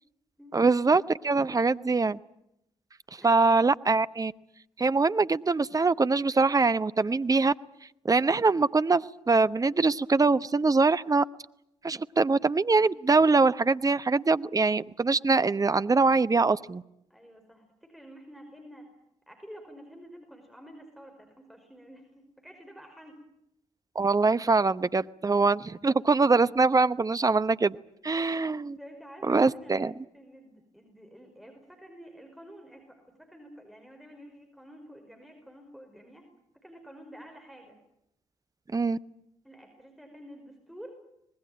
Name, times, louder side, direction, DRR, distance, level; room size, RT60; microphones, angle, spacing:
voice 1, 0.5-2.2 3.1-4.3 4.8-7.5 8.0-11.2 11.8-16.8 23.9-27.8 28.0-28.8 29.3-29.9 38.7-39.0, right 3 dB, 25° right, 15 dB, 0.9 m, -23 dB
voice 2, 1.4-1.7 3.2-3.5 17.1-18.9 19.3-23.2 28.8-36.3 36.6-37.8 39.4-41.0, equal, ahead, 4 dB, 5.6 m, -49 dB
25.0 x 20.5 x 8.9 m, 0.80 s
figure-of-eight pair, 40°, 15 cm